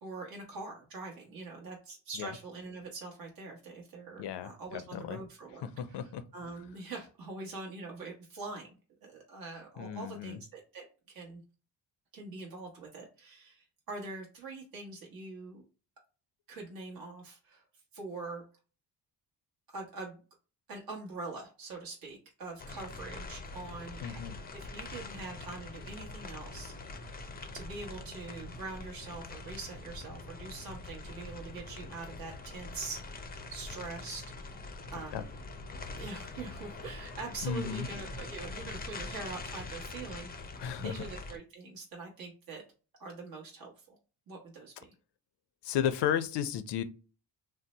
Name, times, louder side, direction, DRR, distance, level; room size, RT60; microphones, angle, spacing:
voice 1, 0.0-11.4 12.1-15.6 16.5-17.6 17.9-18.4 19.7-20.2 20.7-27.1 27.5-33.2 33.5-34.3 34.9-35.3 36.0-42.6 43.0-44.0 44.3-44.9, right 3 dB, 50° right, 1.1 m, -44 dB
voice 2, 4.2-5.2 5.6-6.2 9.8-10.4 24.0-24.4 35.1-35.2 37.4-37.9 40.6-40.9 45.6-46.8, left 9 dB, 70° left, 0.5 m, -34 dB
sound 1, 22.6-41.4, left 3 dB, 20° left, 0.5 m, -44 dB
2.7 x 2.1 x 4.0 m
cardioid pair, 90°, 44 cm